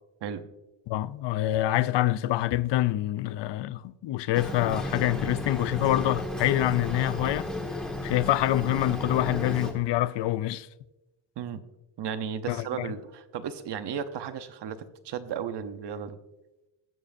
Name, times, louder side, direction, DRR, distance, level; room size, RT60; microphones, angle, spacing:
voice 1, 0.9-7.5 8.0-10.7 12.5-12.9, left 14 dB, 60° left, 0.5 m, -26 dB
Boat Water vehicle, 4.3-9.7, left 1 dB, ahead, 1.6 m, -33 dB
voice 2, 12.0-16.2, right 7 dB, 55° right, 0.9 m, -34 dB
21.0 x 7.5 x 2.6 m
cardioid pair, 145°, 50 cm